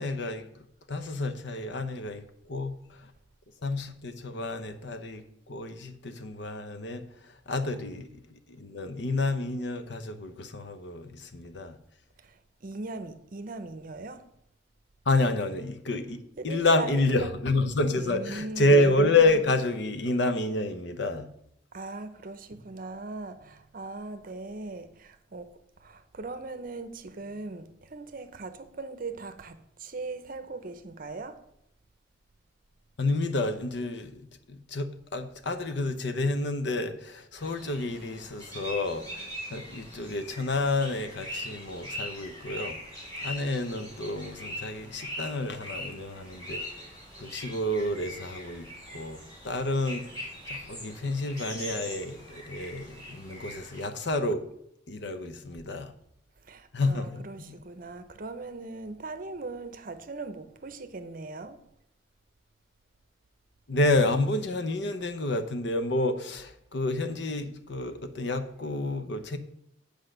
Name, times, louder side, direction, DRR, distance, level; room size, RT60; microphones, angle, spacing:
voice 1, 0.0-3.1 3.6-11.8 15.1-16.2 16.4-21.3 33.0-42.8 43.2-46.9 47.2-50.1 50.5-54.4 54.9-55.9 56.7-57.6 63.7-69.4, left 2 dB, 60° left, 0.8 m, -29 dB
voice 2, 12.6-14.3 16.4-17.3 18.0-18.6 21.7-25.5 25.8-31.4 56.5-61.6, right 3 dB, 45° right, 0.7 m, -39 dB
sound 1, 37.4-53.8, equal, 20° left, 2.5 m, -41 dB
8.1 x 5.1 x 6.4 m
head